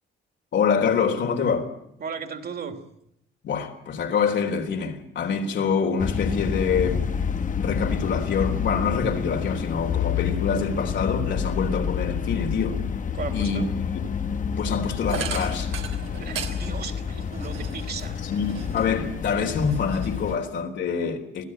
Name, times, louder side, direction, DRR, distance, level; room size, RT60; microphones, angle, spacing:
voice 1, 0.5-1.7 3.4-7.1 7.5-12.8 13.3-14.0 14.6-15.7 18.2-21.4, left 6 dB, 65° left, 3.8 m, -26 dB
voice 2, 2.0-2.8 13.1-13.7 16.2-18.2, right 6 dB, 55° right, 3.2 m, -36 dB
sound 1, 6.0-20.4, left 7 dB, 40° left, 1.2 m, -29 dB
sound 2, 15.1-19.1 19.5-20.6, right 8 dB, 85° right, 3.3 m, -37 dB
24.5 x 16.5 x 8.9 m
cardioid pair, 90°, 20 cm